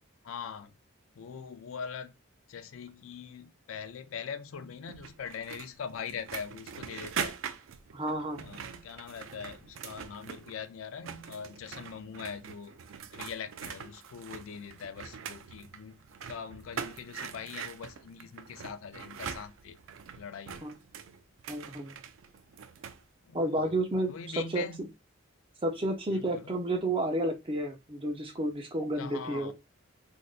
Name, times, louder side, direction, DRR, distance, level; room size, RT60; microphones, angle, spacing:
voice 1, 0.2-0.7 1.2-2.1 2.5-7.4 8.4-12.8 13.1-16.0 16.3-19.8 20.2-20.7 23.3-23.7 24.1-24.9 26.1-26.6 29.0-29.5, left 6 dB, 80° left, 0.4 m, -42 dB
sound 1, 4.9-10.7 10.9-23.0, right 7 dB, 70° right, 0.4 m, -43 dB
voice 2, 7.9-8.4 20.6-20.7 21.5-21.9 23.3-24.1 24.5-24.6 25.6-29.5, right 1 dB, 25° right, 0.6 m, -31 dB
3.4 x 2.6 x 2.4 m
head